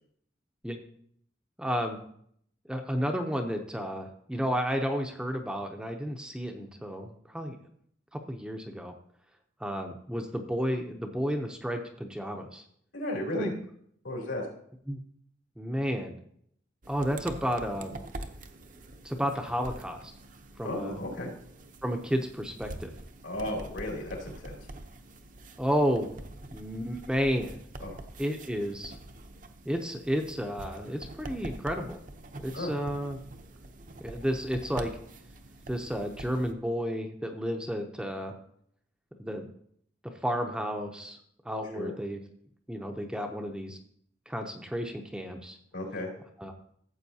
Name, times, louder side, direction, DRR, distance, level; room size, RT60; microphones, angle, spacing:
voice 1, 1.6-2.0 2.7-7.6 8.1-8.9 9.6-12.6 13.3-13.5 14.9-15.0 15.6-16.2 16.9-18.0 19.0-20.1 20.6-21.0 21.8-22.9 25.6-26.2 26.5-27.6 28.2-28.9 29.7-32.0 32.4-33.2 34.0-34.9 35.7-38.4 39.2-39.5 40.2-41.2 41.5-42.2 42.7-43.8 44.3-45.6 46.4-46.5, equal, 5° right, 3 dB, 0.6 m, -32 dB
voice 2, 12.9-13.5 14.0-14.5 20.6-21.3 23.2-24.7 27.8-28.0 32.5-32.7 41.7-41.9 45.7-46.1, left 1 dB, 80° left, -2 dB, 3.2 m, -34 dB
sound 1, 16.8-36.5, right 2 dB, 45° right, 0.7 m, -45 dB
13.5 x 7.7 x 2.8 m, 0.66 s
head